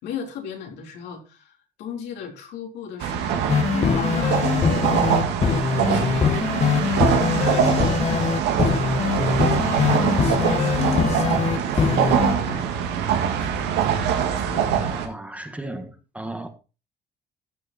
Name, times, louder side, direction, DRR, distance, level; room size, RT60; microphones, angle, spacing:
voice 1, 0.0-5.5 5.8-6.3 7.0-9.0 9.5-12.6 13.4-14.0 14.3-14.9, left 6 dB, 80° left, 3.9 m, -37 dB
sound 1, 3.0-15.1, right 8 dB, 85° right, 2.3 m, -23 dB
sound 2, 3.5-12.3, left 6 dB, 40° left, 1.6 m, -22 dB
voice 2, 14.7-16.5, right 1 dB, 10° right, 1.7 m, -35 dB
14.5 x 6.7 x 4.4 m
cardioid pair, 110°, 17 cm